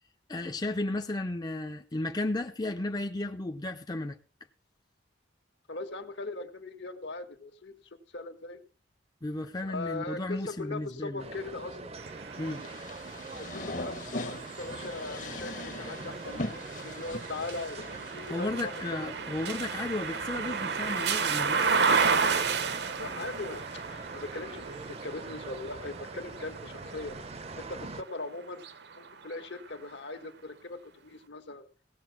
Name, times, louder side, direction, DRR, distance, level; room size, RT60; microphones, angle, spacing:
voice 1, 0.3-4.2 9.2-11.3 12.4-12.6 18.3-21.8, left 2 dB, 20° left, 0.6 m, -34 dB
voice 2, 5.7-8.6 9.6-11.9 13.4-19.5 23.0-27.2 27.6-28.6 28.9-31.6, left 2 dB, 70° left, 1.5 m, -40 dB
sound 1, 11.2-28.0, right 3 dB, 35° right, 0.7 m, -43 dB
sound 2, 12.0-27.9 28.5-29.7, right 5 dB, 60° right, 0.9 m, -33 dB
sound 3, 12.5-18.6, left 2 dB, 45° left, 1.1 m, -40 dB
17.0 x 7.0 x 5.9 m
head